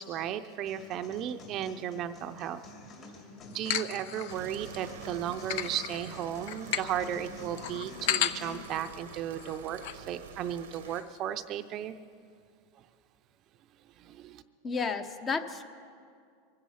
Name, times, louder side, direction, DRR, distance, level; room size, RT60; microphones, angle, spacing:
voice 1, 0.0-3.1 3.5-11.9 14.0-14.4, right 10 dB, 40° right, 9 dB, 0.6 m, -35 dB
sound 1, 0.7-8.7, left 3 dB, 40° left, 2.8 m, -49 dB
sound 2, 3.5-4.8 5.2-10.0 10.3-10.4 10.6-11.2, left 10 dB, 65° left, 0.7 m, -35 dB
sound 3, 4.3-11.0, right 8 dB, 80° right, 0.9 m, -47 dB
voice 2, 14.6-15.7, left 5 dB, 25° left, 9 dB, 0.9 m, -32 dB
23.5 x 10.5 x 5.7 m, 2.3 s
supercardioid pair, 125°, 0 cm